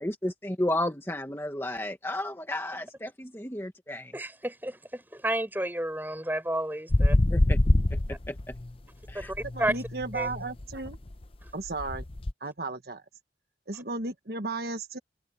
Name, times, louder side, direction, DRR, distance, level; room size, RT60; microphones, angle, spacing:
voice 1, 0.0-4.1 7.3-7.6 8.1-8.3 9.1-9.3, left 1 dB, 15° left, 1.5 m, -32 dB
voice 2, 4.1-7.2 8.1-8.2 9.1-9.7 10.1-10.3 11.4-11.5, right 1 dB, 10° right, 5.1 m, -31 dB
sound 1, 6.9-8.7 9.1-12.3, left 1 dB, 30° left, 0.7 m, -26 dB
voice 3, 9.5-11.0 11.5-12.0 12.4-13.0 13.7-15.0, right 3 dB, 60° right, 1.5 m, -34 dB
open air
head